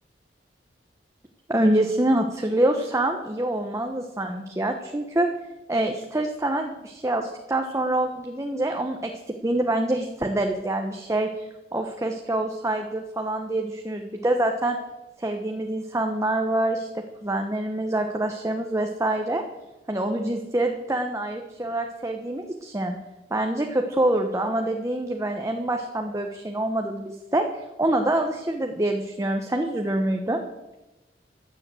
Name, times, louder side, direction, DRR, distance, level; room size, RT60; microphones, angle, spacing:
voice 1, 1.5-5.3 5.7-9.1 9.4-14.8 15.2-16.9 17.2-19.4 19.9-22.9 23.3-30.4, right 1 dB, 15° right, 3 dB, 1.1 m, -26 dB
15.5 x 11.0 x 7.8 m, 1.0 s
head